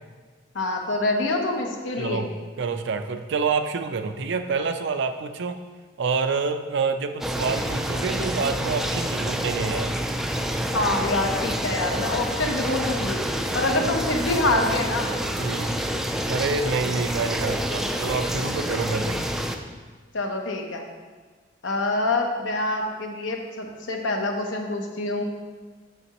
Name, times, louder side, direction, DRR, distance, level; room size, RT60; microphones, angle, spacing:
voice 1, 0.5-2.3 10.7-13.2 13.5-15.1 20.1-20.8 21.6-25.2, left 2 dB, 75° left, 2 dB, 0.9 m, -26 dB
voice 2, 2.0-2.3 2.6-5.6 6.0-10.0 15.4-15.8 16.1-19.2, right 4 dB, 65° right, 8 dB, 0.4 m, -27 dB
sound 1, 7.2-19.6, equal, ahead, 0.3 m, -28 dB
7.0 x 6.8 x 3.0 m, 1.4 s
head